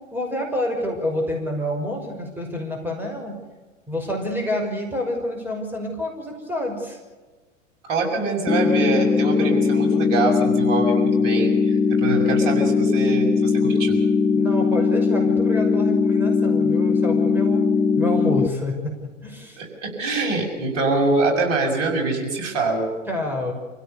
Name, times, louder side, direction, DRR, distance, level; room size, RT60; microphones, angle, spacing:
voice 1, 0.1-3.4 3.9-7.0 14.3-17.7 18.0-19.6 23.1-23.5, left 1 dB, 5° right, 1 dB, 6.0 m, -28 dB
voice 2, 7.8-14.1 19.6-22.9, right 3 dB, 50° right, 2 dB, 6.7 m, -24 dB
sound 1, 8.5-18.5, left 5 dB, 10° left, 0.8 m, -20 dB
28.0 x 16.5 x 6.9 m, 1.3 s
figure-of-eight pair, 100°, 38 cm